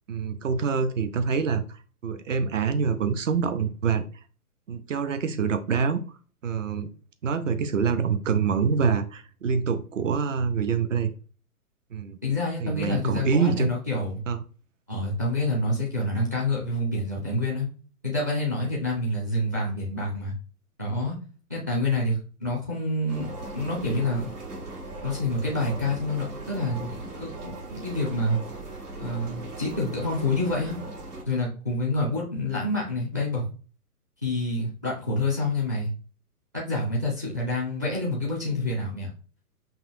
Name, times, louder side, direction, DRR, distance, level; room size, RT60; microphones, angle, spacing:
voice 1, 0.1-4.0 4.7-6.0 6.4-6.9 7.2-11.1 11.9-12.2 12.6-13.7 14.3-14.4, right 6 dB, 55° right, 9 dB, 0.7 m, -26 dB
voice 2, 12.2-14.2 14.9-17.7 18.0-20.3 20.8-21.1 21.5-24.3 25.0-28.4 29.0-30.8 31.3-33.4 34.2-35.9 36.5-39.1, left 2 dB, 15° right, -3 dB, 0.4 m, -27 dB
sound 1, 23.1-31.2, right 2 dB, 85° right, 2.2 m, -38 dB
5.5 x 2.6 x 2.7 m, 0.37 s
hypercardioid pair, 155°, 46 cm